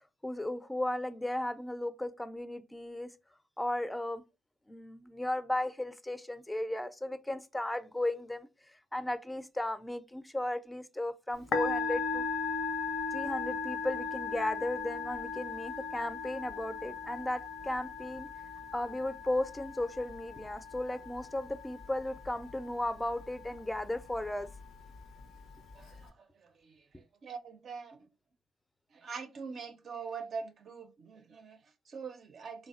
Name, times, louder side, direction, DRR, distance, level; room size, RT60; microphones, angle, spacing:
voice 1, 0.2-3.1 3.6-4.2 4.7-12.2 13.1-18.3 18.7-24.5 26.9-27.0, left 1 dB, 10° left, 0.4 m, -35 dB
Musical instrument, 11.3-26.1, left 5 dB, 70° left, 0.4 m, -38 dB
voice 2, 25.7-28.1 28.9-32.7, right 5 dB, 60° right, 0.4 m, -44 dB
3.3 x 2.0 x 2.4 m
supercardioid pair, 60°, 0 cm